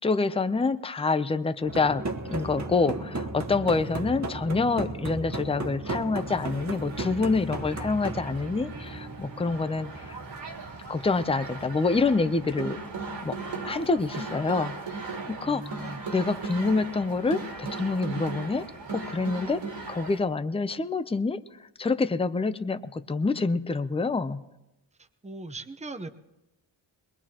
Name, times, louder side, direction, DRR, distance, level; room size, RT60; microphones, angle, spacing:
voice 1, 0.0-10.2 10.9-12.8 13.2-13.4 13.6-14.8 15.3-15.6 16.1-18.7 18.9-21.4 21.8-24.4, left 3 dB, 15° left, 11 dB, 0.5 m, -27 dB
sound 1, 1.6-13.5, right 2 dB, 35° right, 1.3 m, -36 dB
sound 2, 6.1-20.2, right 3 dB, 70° right, 2.4 m, -38 dB
voice 2, 15.4-16.0 25.0-26.1, right 2 dB, 15° right, 8 dB, 0.8 m, -39 dB
21.5 x 20.5 x 2.9 m, 0.98 s
cardioid pair, 65°, 47 cm